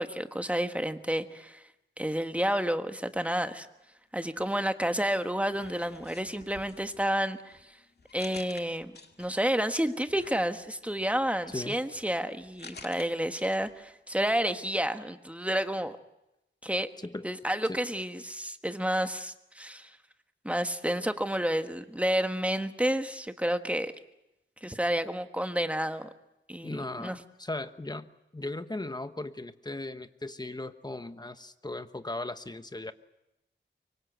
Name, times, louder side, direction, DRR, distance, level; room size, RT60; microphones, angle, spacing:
voice 1, 0.0-1.6 2.0-3.7 4.1-7.8 8.1-8.9 9.2-16.0 16.6-16.9 17.2-20.0 20.4-23.9 24.6-26.1 26.5-27.2, equal, 5° right, 8 dB, 1.4 m, -30 dB
sound 1, 4.3-5.1 5.5-9.6 10.1-13.9 14.2-14.3, left 4 dB, 55° left, 2.1 m, -52 dB
voice 2, 26.6-28.1 28.3-32.9, left 2 dB, 20° left, 11 dB, 1.1 m, -37 dB
24.5 x 24.0 x 8.1 m, 0.90 s
wide cardioid pair, 100°, 20 cm